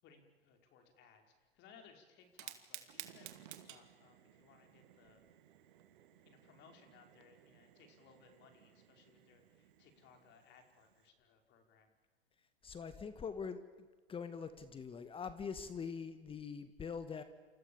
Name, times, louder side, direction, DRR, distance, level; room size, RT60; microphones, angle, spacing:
voice 1, 0.0-5.2 6.3-11.9, left 6 dB, 35° left, 5 dB, 5.4 m, -64 dB
Fire, 2.2-11.1, right 13 dB, 55° right, 2.6 m, -56 dB
voice 2, 12.6-13.6 14.1-17.2, left 6 dB, 20° left, 11 dB, 1.8 m, -43 dB
29.0 x 28.0 x 7.2 m, 1.4 s
figure-of-eight pair, 100°, 30 cm